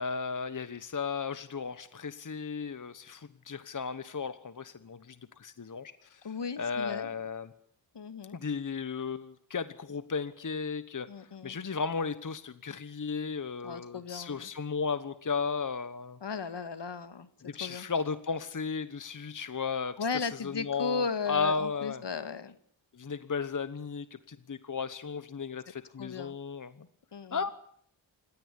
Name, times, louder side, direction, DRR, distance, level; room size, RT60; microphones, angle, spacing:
voice 1, 0.0-6.3 6.6-7.5 8.3-16.2 17.4-20.0 20.4-22.0 22.9-26.9 27.3-27.5, left 5 dB, 40° left, 13 dB, 1.2 m, -35 dB
voice 2, 6.2-7.1 7.9-8.4 11.1-11.6 13.6-14.5 16.2-17.9 20.0-22.6 26.0-26.4 27.1-27.4, left 5 dB, 65° left, 12 dB, 2.0 m, -36 dB
28.5 x 16.5 x 9.8 m, 0.65 s
wide cardioid pair, 105°, 46 cm